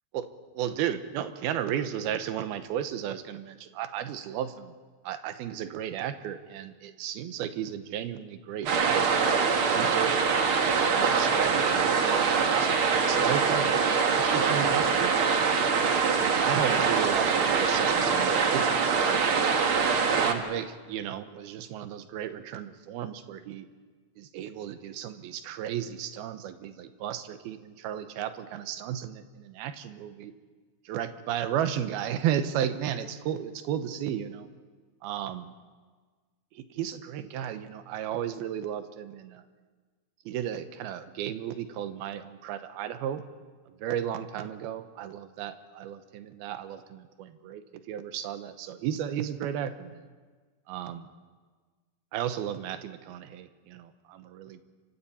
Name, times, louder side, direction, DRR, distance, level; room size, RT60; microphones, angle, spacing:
voice 1, 0.6-4.7 5.0-10.2 10.8-15.1 15.8-16.1 16.4-19.5 20.1-23.7 24.2-30.3 30.9-34.5 35.0-35.5 36.5-39.4 40.3-43.2 43.7-47.6 47.9-50.1 50.7-51.1 52.1-54.6, right 10 dB, 80° right, 10 dB, 2.8 m, -34 dB
sound 1, 8.7-20.3, right 5 dB, 60° right, 1.4 m, -24 dB
29.0 x 25.0 x 4.2 m, 1.4 s
omnidirectional pair, 4.5 m